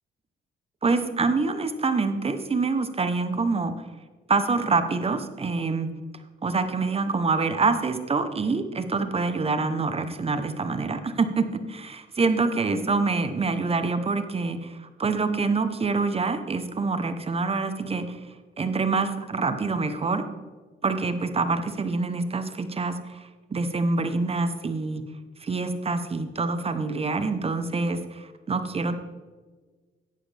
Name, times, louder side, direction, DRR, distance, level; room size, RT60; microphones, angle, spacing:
voice 1, 0.8-3.7 4.3-5.9 6.4-18.2 18.6-20.2 20.8-25.0 25.4-29.0, right 3 dB, 30° right, 9 dB, 0.9 m, -26 dB
10.5 x 9.9 x 3.4 m, 1.4 s
cardioid pair, 90°, 20 cm